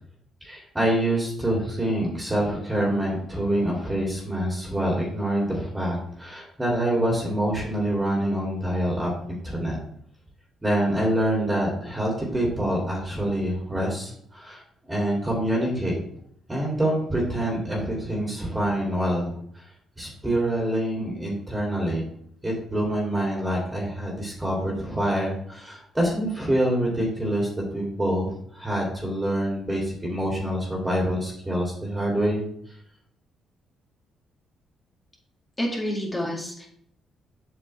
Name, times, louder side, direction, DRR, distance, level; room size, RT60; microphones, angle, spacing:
voice 1, 0.4-9.8 10.6-16.0 16.5-19.7 20.0-22.1 22.4-32.4, right 1 dB, 10° right, -3 dB, 2.6 m, -26 dB
voice 2, 35.6-36.7, equal, 15° left, -3 dB, 1.9 m, -28 dB
7.9 x 6.0 x 3.2 m, 0.66 s
cardioid pair, 90°, 0 cm